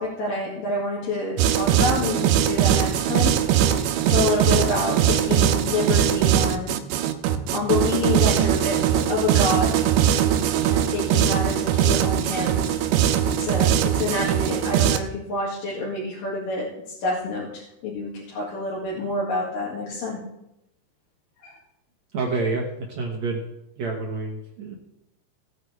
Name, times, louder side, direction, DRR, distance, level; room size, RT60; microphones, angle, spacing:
voice 1, 0.0-6.7 7.5-12.7 13.2-16.7 17.0-20.2 21.4-21.5, left 2 dB, 55° left, -5 dB, 3.4 m, -28 dB
sound 1, 1.4-15.0, right 10 dB, 90° right, 3.0 m, -21 dB
voice 2, 22.1-23.4 23.8-24.8, right 3 dB, 65° right, 0 dB, 1.7 m, -28 dB
18.0 x 8.9 x 3.3 m, 0.86 s
omnidirectional pair, 5.0 m